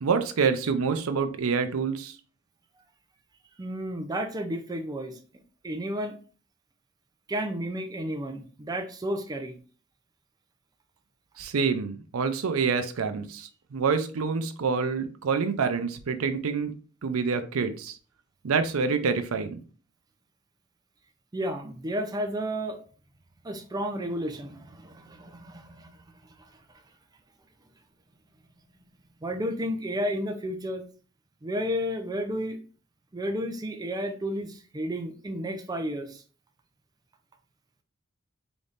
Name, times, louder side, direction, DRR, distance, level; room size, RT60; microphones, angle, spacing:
voice 1, 0.0-2.2 11.4-16.7 17.0-18.0 18.4-19.6, right 5 dB, 90° right, 9 dB, 0.5 m, -27 dB
voice 2, 3.6-5.2 5.6-6.2 7.3-9.6 21.3-22.8 23.4-25.9 29.2-30.8 31.4-32.6 33.1-36.2, equal, 20° right, 5 dB, 0.5 m, -32 dB
3.9 x 3.5 x 2.5 m, 0.38 s
head